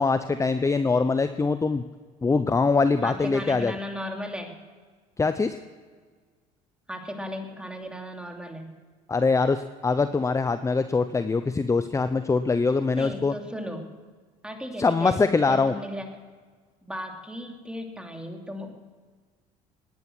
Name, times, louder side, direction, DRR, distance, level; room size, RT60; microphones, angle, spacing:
voice 1, 0.0-1.8 2.2-3.7 5.2-5.6 9.1-13.3 14.8-15.7, left 4 dB, 20° left, 11 dB, 0.7 m, -23 dB
voice 2, 3.0-4.6 6.9-8.7 12.9-13.9 14.4-16.1 16.8-18.8, equal, 5° right, 3 dB, 2.9 m, -36 dB
18.0 x 10.5 x 6.2 m, 1.5 s
supercardioid pair, 85°, 17 cm